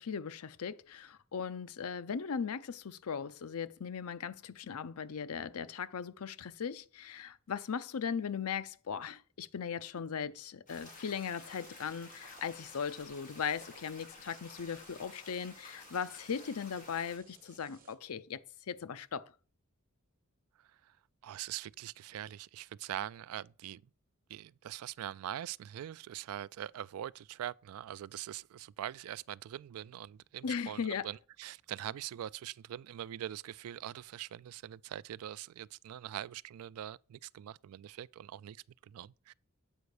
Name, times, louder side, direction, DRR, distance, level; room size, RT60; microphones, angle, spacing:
voice 1, 0.0-18.4 18.7-19.2 30.4-31.1, left 6 dB, 80° left, 0.5 m, -38 dB
sound 1, 10.7-17.2, left 3 dB, 40° left, 2.9 m, -53 dB
sound 2, 10.7-17.9, right 5 dB, 40° right, 1.5 m, -61 dB
voice 2, 20.6-21.0 21.2-23.8 24.3-39.3, right 11 dB, 75° right, 0.3 m, -43 dB
8.1 x 5.2 x 4.8 m
head